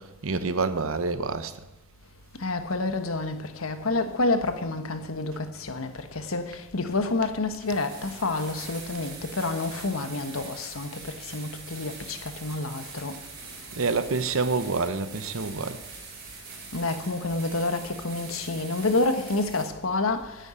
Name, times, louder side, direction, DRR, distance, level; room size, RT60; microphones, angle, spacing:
voice 1, 0.0-1.7 13.7-15.8, right 4 dB, 80° right, 0.9 m, -27 dB
voice 2, 2.4-13.1 16.7-20.4, left 2 dB, 80° left, 1.3 m, -28 dB
sound 1, 4.5-4.6 6.3-6.4 7.0-7.1 7.6-19.6, right 4 dB, 50° right, 4.2 m, -43 dB
10.0 x 8.9 x 8.9 m
head